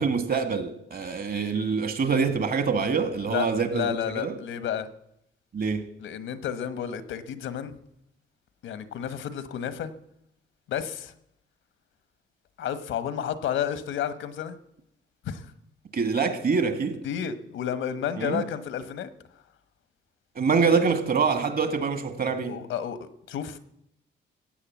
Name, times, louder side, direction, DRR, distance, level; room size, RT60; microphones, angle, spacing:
voice 1, 0.0-3.9 4.2-4.3 5.5-5.9 15.9-17.0 18.2-18.4 20.4-22.6, right 5 dB, 50° right, 1.9 m, -25 dB
voice 2, 3.7-4.9 6.0-7.8 8.6-9.9 10.7-11.1 12.6-14.6 15.2-15.5 17.0-19.1 22.4-23.6, left 9 dB, 75° left, 1.3 m, -31 dB
16.5 x 8.5 x 7.4 m
cardioid pair, 90°, 20 cm